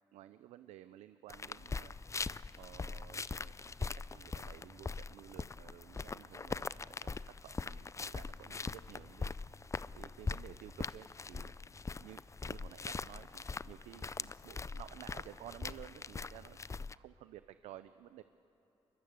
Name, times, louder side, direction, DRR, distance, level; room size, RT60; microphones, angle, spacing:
voice 1, 0.1-1.9 2.6-9.3 10.0-11.5 12.0-18.2, right 13 dB, 90° right, 13 dB, 0.5 m, -54 dB
sound 1, 1.3-16.9, left 4 dB, 25° left, 0.5 m, -42 dB
22.5 x 21.5 x 8.0 m, 2.9 s
supercardioid pair, 55°, 11 cm